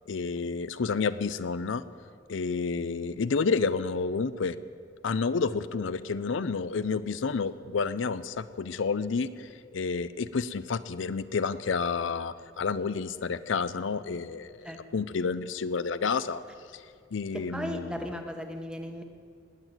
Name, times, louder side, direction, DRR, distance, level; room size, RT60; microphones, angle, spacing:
voice 1, 0.1-1.8 2.3-4.6 5.0-16.4 16.7-16.8 17.1-17.9, left 4 dB, 70° left, 13 dB, 0.5 m, -30 dB
voice 2, 17.3-19.0, equal, 5° right, 5 dB, 1.1 m, -36 dB
19.0 x 9.0 x 7.9 m, 2.1 s
head